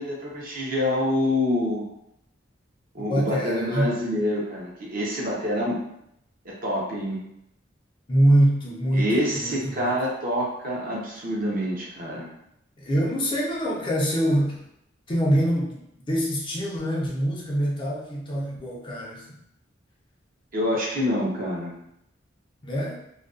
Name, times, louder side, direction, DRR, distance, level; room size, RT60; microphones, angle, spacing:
voice 1, 0.0-1.8 2.9-5.8 6.6-7.2 8.9-12.3 20.5-21.7, left 1 dB, 50° right, -4 dB, 0.7 m, -26 dB
voice 2, 3.0-3.9 8.1-9.9 12.8-14.6 15.1-15.8 16.1-19.3 22.6-23.0, right 1 dB, 25° left, -4 dB, 0.5 m, -24 dB
2.4 x 2.2 x 2.4 m, 0.78 s
head